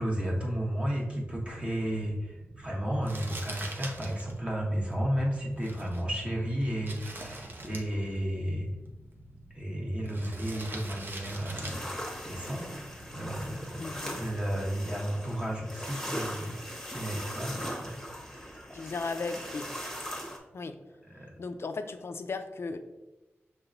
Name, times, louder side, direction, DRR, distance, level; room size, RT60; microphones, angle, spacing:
voice 1, 0.0-8.7 9.5-16.6 16.9-18.0 18.5-18.6 21.1-21.3, equal, 25° right, -3 dB, 1.0 m, -33 dB
Spaceship Ambience, 1.2-14.7, right 1 dB, 80° right, 0.7 m, -52 dB
Crumpling crinkling, 3.0-13.2, right 1 dB, 50° right, 0.7 m, -46 dB
sound 1, 10.5-20.4, equal, 10° left, 1.0 m, -40 dB
voice 2, 13.8-14.2 18.7-19.7 20.5-20.8 21.4-22.8, left 4 dB, 60° left, 8 dB, 0.4 m, -36 dB
5.8 x 3.2 x 2.5 m, 1.0 s
wide cardioid pair, 70°, 5 cm